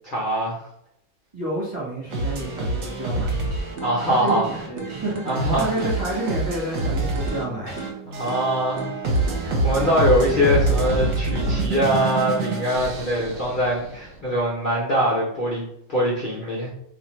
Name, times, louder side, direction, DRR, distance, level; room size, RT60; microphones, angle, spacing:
voice 1, 0.0-0.6 3.8-4.4 5.2-5.7 8.1-8.9 9.4-16.7, equal, 85° left, -5 dB, 0.4 m, -23 dB
voice 2, 1.3-3.3 4.0-7.8, right 1 dB, 25° right, -7 dB, 0.9 m, -29 dB
sound 1, 2.1-14.0, right 2 dB, 55° right, 1.0 m, -26 dB
sound 2, 3.8-11.8, right 7 dB, 75° right, 0.6 m, -37 dB
2.7 x 2.5 x 4.2 m, 0.73 s
omnidirectional pair, 2.0 m